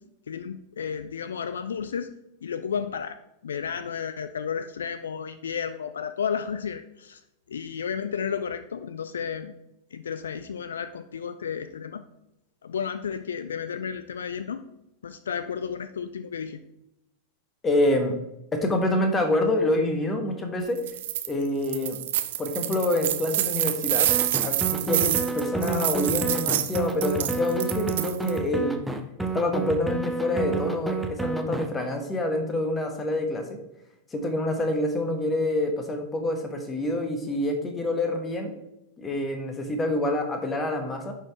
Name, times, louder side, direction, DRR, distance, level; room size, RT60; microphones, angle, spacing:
voice 1, 0.3-2.1 2.4-3.2 3.4-7.2 7.5-9.5 9.9-12.0 12.6-14.6 15.0-16.6, left 7 dB, 65° left, 12 dB, 0.3 m, -32 dB
voice 2, 17.6-18.1 18.5-20.8 21.3-22.0 22.4-24.1 24.4-28.8 29.2-33.6 34.1-38.5 39.0-41.1, left 1 dB, 20° left, 5 dB, 1.3 m, -27 dB
sound 1, 20.8-21.3 21.6-28.4, right 13 dB, 55° right, 0.6 m, -27 dB
sound 2, 24.1-31.7, right 4 dB, 5° right, 0.7 m, -30 dB
10.5 x 4.5 x 3.4 m, 0.87 s
figure-of-eight pair, 90°, 0 cm